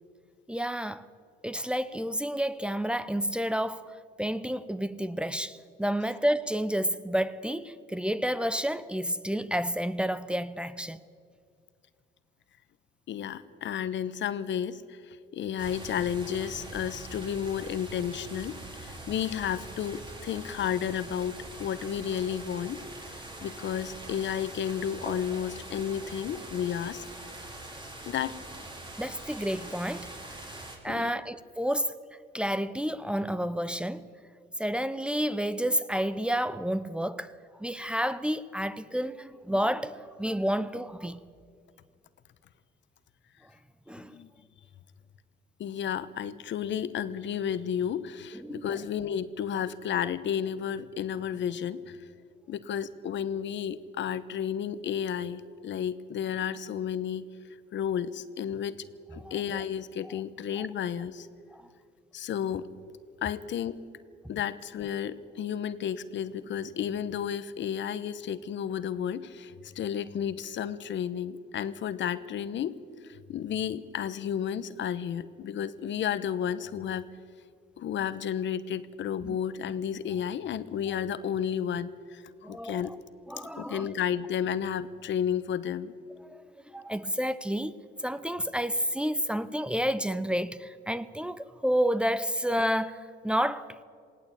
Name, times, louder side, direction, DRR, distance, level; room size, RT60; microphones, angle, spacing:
voice 1, 0.5-1.1 1.4-11.0 29.0-30.1 30.8-31.9 32.3-34.1 34.6-37.3 37.6-41.2 43.9-44.2 48.3-48.8 59.2-59.3 60.6-60.7 61.5-61.6 79.2-79.4 82.4-82.8 83.3-83.9 86.2-86.4 86.7-87.7 88.0-93.7, equal, 5° right, 0.8 m, -30 dB
voice 2, 13.1-27.0 28.1-28.4 30.9-31.2 44.1-44.3 45.6-52.1 52.5-57.3 57.7-58.8 59.1-61.3 62.1-62.7 63.2-63.8 64.3-77.1 77.8-82.9 83.6-85.9, left 9 dB, 65° left, 1.0 m, -32 dB
sound 1, 15.6-30.8, right 2 dB, 25° right, 4.5 m, -43 dB
18.5 x 17.5 x 8.6 m
cardioid pair, 90°, 20 cm